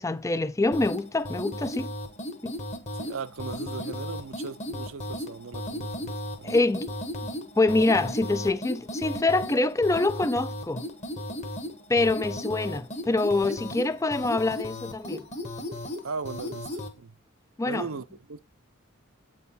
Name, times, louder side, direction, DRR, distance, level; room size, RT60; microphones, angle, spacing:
voice 1, 0.0-1.9 2.4-2.6 6.4-6.9 7.6-10.9 11.9-15.2 17.6-17.9, left 2 dB, 15° left, 0.4 m, -25 dB
sound 1, 0.7-16.9, left 1 dB, 30° left, 1.2 m, -36 dB
voice 2, 2.9-6.6 16.0-17.1 17.6-18.4, right 5 dB, 75° right, 0.6 m, -38 dB
8.3 x 4.5 x 4.0 m
head